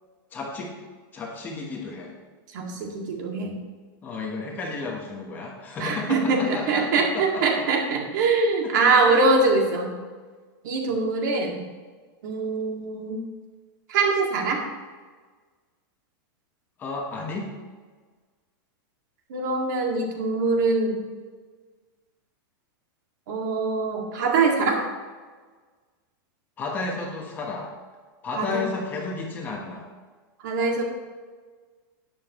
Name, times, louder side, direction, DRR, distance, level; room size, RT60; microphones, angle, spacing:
voice 1, 0.3-0.7 1.1-2.1 4.0-7.6 9.1-9.3 16.8-17.5 26.6-27.7 28.2-29.8, left 3 dB, 15° left, -1 dB, 1.1 m, -32 dB
voice 2, 2.5-3.6 5.8-9.9 10.6-11.6 12.2-13.2 13.9-14.6 19.3-21.0 23.3-24.8 28.3-28.7 30.4-30.8, right 3 dB, 55° right, 1 dB, 2.1 m, -23 dB
12.0 x 9.3 x 3.1 m, 1.4 s
supercardioid pair, 175°, 12 cm